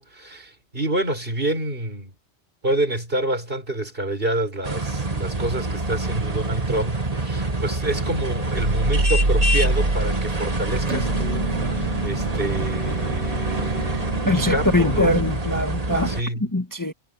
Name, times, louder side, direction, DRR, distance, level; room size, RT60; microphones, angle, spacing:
voice 1, 0.0-2.1 2.6-14.2 14.5-15.2 16.1-16.4, right 1 dB, 50° right, 6.1 m, -28 dB
sound 1, 4.6-16.2, right 2 dB, 30° right, 2.0 m, -26 dB
sound 2, 8.6-15.3, right 2 dB, 70° right, 3.0 m, -26 dB
voice 2, 14.2-16.1 16.4-16.9, left 1 dB, 15° left, 1.4 m, -22 dB
omnidirectional pair, 1.3 m